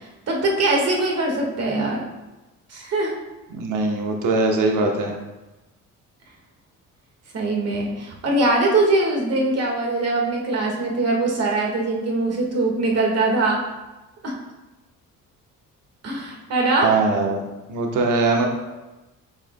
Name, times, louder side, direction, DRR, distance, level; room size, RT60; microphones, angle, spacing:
voice 1, 0.3-2.0 2.7-3.2 7.3-13.6 14.2-14.3 16.0-16.9, right 2 dB, 50° right, -1 dB, 1.7 m, -22 dB
voice 2, 3.5-5.1 16.8-18.5, right 3 dB, 65° right, 1 dB, 1.1 m, -21 dB
9.3 x 4.9 x 2.2 m, 1.1 s
cardioid pair, 100°, 33 cm